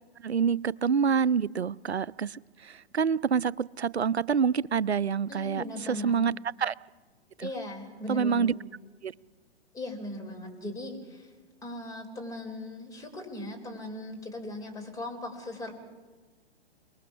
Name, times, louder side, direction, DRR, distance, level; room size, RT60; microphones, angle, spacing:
voice 1, 0.2-6.7 7.4-7.5 8.1-8.5 9.0-9.1, right 6 dB, 75° right, 23 dB, 0.6 m, -27 dB
voice 2, 5.3-6.2 7.4-8.6 9.7-11.3 11.6-15.7, left 1 dB, 10° left, 3 dB, 4.0 m, -38 dB
29.5 x 20.0 x 5.8 m, 1.3 s
figure-of-eight pair, 115°, 32 cm